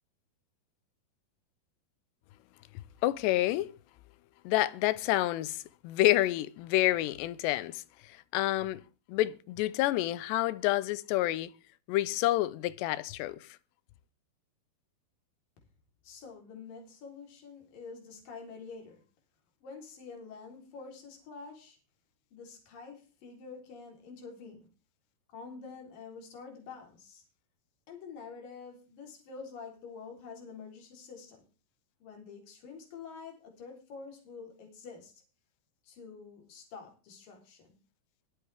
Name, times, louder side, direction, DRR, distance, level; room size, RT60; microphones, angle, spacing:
voice 1, 3.0-3.7 4.4-8.8 9.1-11.5 11.9-13.5, left 16 dB, 85° left, 2.9 m, -29 dB
voice 2, 16.0-19.0 19.6-21.8 22.3-24.7 25.3-27.2 27.9-31.4 32.0-35.1 35.8-37.8, left 5 dB, 55° left, 5.5 m, -47 dB
22.5 x 7.9 x 3.5 m
omnidirectional pair, 4.8 m